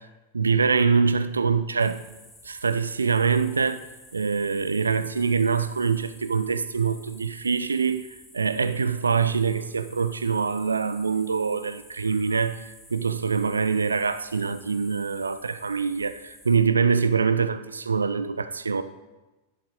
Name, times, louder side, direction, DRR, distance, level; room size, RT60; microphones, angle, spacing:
voice 1, 0.3-2.0 2.4-3.8 4.1-8.1 8.3-18.8, right 5 dB, 75° right, 0.6 m, -24 dB
sound 1, 1.8-16.6, left 1 dB, 5° left, 3.1 m, -51 dB
11.5 x 11.0 x 4.2 m
figure-of-eight pair, 90°, 0 cm